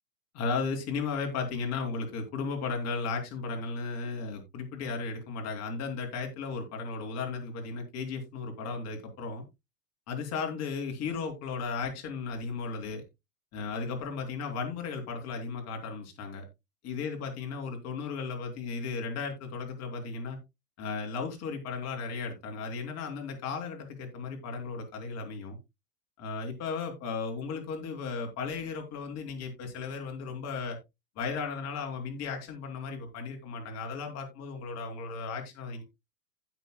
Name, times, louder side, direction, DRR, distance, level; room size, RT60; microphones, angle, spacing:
voice 1, 0.3-9.4 10.1-13.0 13.5-16.4 16.8-20.4 20.8-25.6 26.2-30.8 31.2-35.8, left 4 dB, 35° left, 3.3 m, -35 dB
15.5 x 6.3 x 2.3 m
figure-of-eight pair, 95°, 47 cm